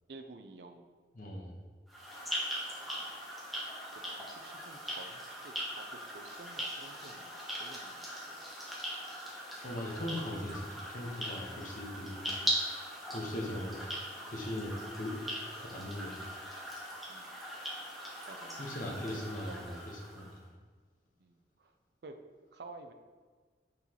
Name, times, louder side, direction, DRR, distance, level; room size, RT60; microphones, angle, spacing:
voice 1, 0.1-1.0 4.1-8.3 9.8-10.2 11.8-11.9 12.3-12.6 13.3-13.4 17.1-17.4 18.3-19.1 19.5-19.8 21.2-21.7 22.0-22.1 22.5-22.9, right 3 dB, 60° right, 6 dB, 0.5 m, -52 dB
voice 2, 1.1-1.5 9.6-12.3 13.1-13.8 14.3-15.2 15.6-16.1 18.6-20.4, left 1 dB, 50° left, -1 dB, 1.1 m, -39 dB
sound 1, 1.9-20.4, equal, ahead, 1.1 m, -40 dB
6.1 x 5.6 x 3.0 m, 1.5 s
head